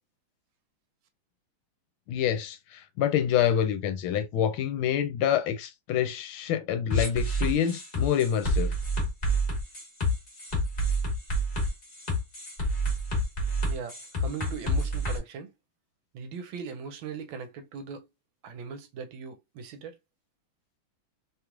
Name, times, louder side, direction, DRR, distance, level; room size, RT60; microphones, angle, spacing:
voice 1, 2.1-8.7, left 9 dB, 80° left, 1.4 m, -27 dB
sound 1, 6.9-15.2, equal, 25° left, 1.1 m, -28 dB
voice 2, 13.7-15.5 16.1-18.1 18.4-20.0, right 6 dB, 75° right, 1.4 m, -39 dB
3.4 x 3.0 x 2.4 m
omnidirectional pair, 2.3 m